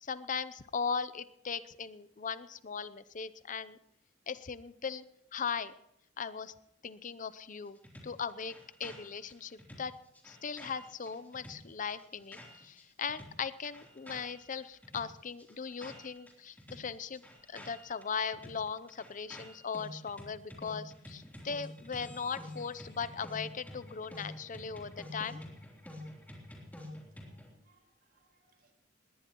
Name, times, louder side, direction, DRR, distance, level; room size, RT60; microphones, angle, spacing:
voice 1, 0.0-3.8 4.3-5.0 5.3-5.7 6.2-6.5 6.8-7.8 8.0-8.5 8.8-9.9 10.2-17.2 17.5-25.4, left 6 dB, 45° left, 15 dB, 0.6 m, -38 dB
sound 1, 7.8-12.8 13.1-16.3 16.6-27.5, left 1 dB, 10° left, 3.4 m, -49 dB
voice 2, 27.1-28.7, right 3 dB, 55° right, 3 dB, 4.5 m, -72 dB
21.0 x 18.0 x 3.1 m, 0.82 s
head